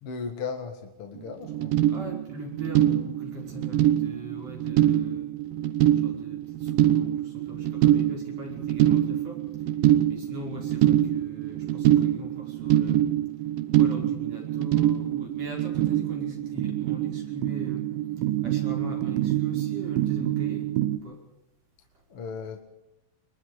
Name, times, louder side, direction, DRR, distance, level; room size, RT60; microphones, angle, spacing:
voice 1, 0.0-1.8 22.1-22.6, left 5 dB, 50° left, 4 dB, 2.3 m, -36 dB
sound 1, 1.2-1.3 1.4-21.0, right 12 dB, 80° right, 2.7 m, -25 dB
voice 2, 1.9-5.3 6.0-9.7 10.1-13.1 13.7-17.9 18.2-21.2, equal, 45° right, 0 dB, 6.4 m, -41 dB
23.5 x 22.0 x 5.0 m, 0.88 s
omnidirectional pair, 4.0 m